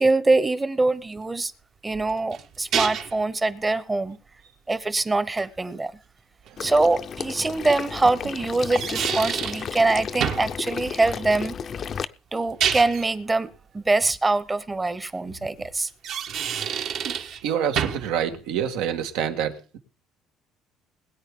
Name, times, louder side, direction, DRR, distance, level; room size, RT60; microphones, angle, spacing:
voice 1, 0.0-1.5 1.8-4.2 4.7-5.9 6.6-11.5 12.3-13.5 13.7-15.9, right 2 dB, 15° right, 0.9 m, -23 dB
sound 1, 1.9-3.2 6.5-6.6 8.5-9.7 10.2-10.5 12.4-13.1 15.9-17.4 17.8-18.1, right 8 dB, 60° right, 1.4 m, -28 dB
Water / Liquid, 6.6-12.0, left 7 dB, 45° left, 0.6 m, -33 dB
voice 2, 17.4-19.8, right 9 dB, 90° right, 1.7 m, -27 dB
21.0 x 8.8 x 3.7 m
cardioid pair, 115°, 0 cm